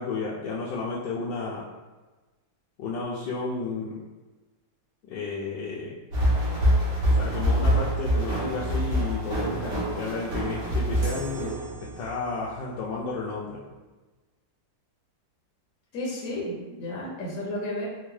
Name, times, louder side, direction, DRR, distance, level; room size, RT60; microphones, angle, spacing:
voice 1, 0.0-1.7 2.8-4.0 5.1-6.0 7.1-13.6, left 4 dB, 80° left, -6 dB, 1.2 m, -32 dB
sound 1, 6.1-12.1, equal, 70° right, 1.9 m, -25 dB
sound 2, 11.0-12.5, right 4 dB, 55° right, 0.9 m, -43 dB
voice 2, 15.9-17.9, left 1 dB, 60° left, -4 dB, 0.9 m, -32 dB
4.4 x 2.2 x 3.1 m, 1.2 s
omnidirectional pair, 2.0 m